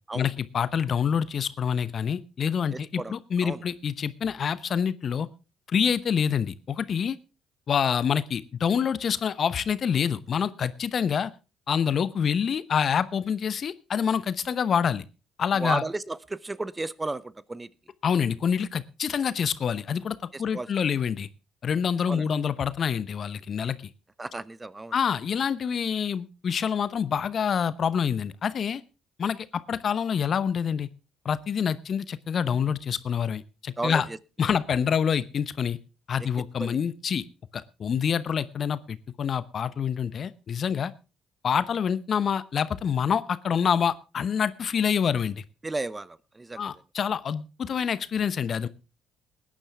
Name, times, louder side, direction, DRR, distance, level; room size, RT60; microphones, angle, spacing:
voice 1, 0.1-5.3 5.7-7.2 7.7-11.3 11.7-15.0 15.4-15.8 18.0-21.3 21.6-23.8 24.9-28.8 29.2-30.9 31.2-34.1 34.4-35.8 36.1-37.2 37.5-40.9 41.4-45.4 46.6-48.7, left 7 dB, 50° left, 16 dB, 0.8 m, -26 dB
voice 2, 2.7-3.1 3.4-3.6 15.5-17.7 20.3-20.7 22.1-22.2 24.2-24.9 33.8-34.2 36.6-36.8 45.6-46.6, right 2 dB, 20° right, 20 dB, 0.7 m, -33 dB
20.0 x 10.0 x 3.5 m, 0.31 s
hypercardioid pair, 50°, 0 cm